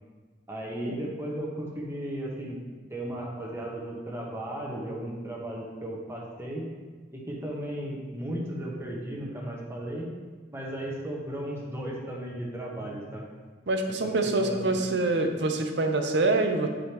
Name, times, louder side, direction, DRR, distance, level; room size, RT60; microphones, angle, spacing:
voice 1, 0.5-2.6 2.9-6.7 7.1-10.1 10.5-13.3 13.9-14.8, right 1 dB, 15° right, -2 dB, 1.1 m, -35 dB
voice 2, 13.7-16.7, right 2 dB, 70° right, 5 dB, 0.7 m, -26 dB
9.4 x 5.0 x 3.0 m, 1.4 s
head